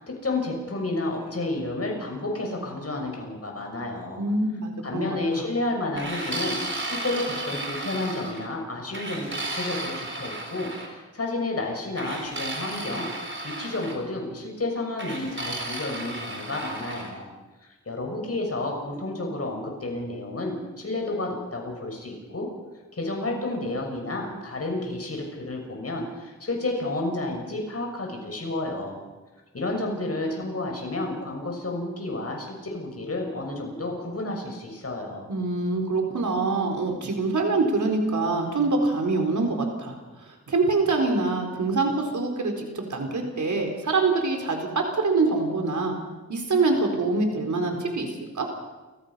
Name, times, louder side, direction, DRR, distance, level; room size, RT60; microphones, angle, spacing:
voice 1, 0.0-4.2 4.8-13.1 13.4-17.3 17.6-22.5 22.9-29.0 29.5-35.3, left 2 dB, 50° left, 1 dB, 6.4 m, -31 dB
voice 2, 4.2-5.4 35.3-40.0 40.5-45.9 46.3-48.1 48.3-48.5, right 3 dB, 70° right, 2 dB, 4.2 m, -25 dB
sound 1, 6.0-8.5 8.9-10.9 12.0-14.0 15.0-17.1, right 2 dB, 40° right, 4.2 m, -34 dB
30.0 x 15.0 x 5.7 m, 1.2 s
wide cardioid pair, 70°, 31 cm